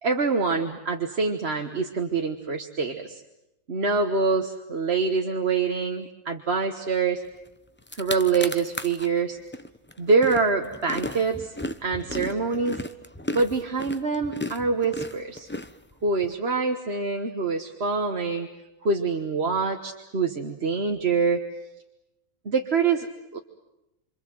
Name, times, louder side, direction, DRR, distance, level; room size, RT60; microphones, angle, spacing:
voice 1, 0.0-3.2 3.7-7.2 7.9-9.4 10.0-11.5 11.8-12.8 13.3-15.5 16.0-18.5 18.8-21.5 22.4-23.1 23.3-23.4, right 4 dB, 50° right, 4 dB, 1.6 m, -25 dB
sound 1, 7.5-7.6 7.8-9.1 9.5-16.3, left 1 dB, 10° left, 0.7 m, -35 dB
26.5 x 26.5 x 7.9 m, 0.93 s
omnidirectional pair, 1.5 m